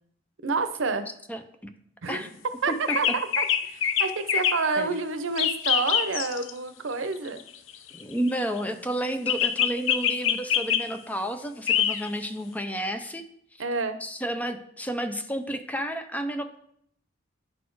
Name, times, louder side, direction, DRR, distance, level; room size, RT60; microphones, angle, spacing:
voice 1, 0.4-1.0 2.0-2.2 2.6-3.1 3.4-7.4 13.6-14.0, right 4 dB, 85° right, 10 dB, 0.7 m, -28 dB
sound 1, 2.9-4.6 5.4-6.5 7.4-8.4 9.3-10.9 11.7-12.1, left 9 dB, 80° left, 0.5 m, -25 dB
voice 2, 7.9-13.2 14.0-16.6, right 1 dB, 10° left, 7 dB, 0.5 m, -31 dB
10.0 x 4.2 x 4.6 m, 0.68 s
head